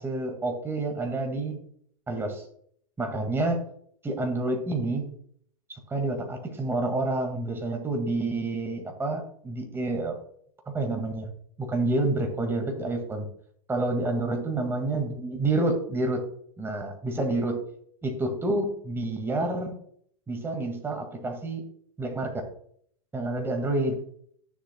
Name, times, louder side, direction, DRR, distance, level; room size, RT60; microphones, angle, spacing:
voice 1, 0.0-1.6 2.1-2.4 3.0-3.6 4.0-5.1 5.7-10.1 10.7-11.3 11.6-13.3 13.7-16.2 16.6-17.6 18.0-19.7 20.3-21.6 22.0-22.5 23.1-24.0, right 2 dB, 15° right, 3 dB, 1.9 m, -28 dB
13.0 x 6.9 x 2.2 m, 0.63 s
hypercardioid pair, 100°, 18 cm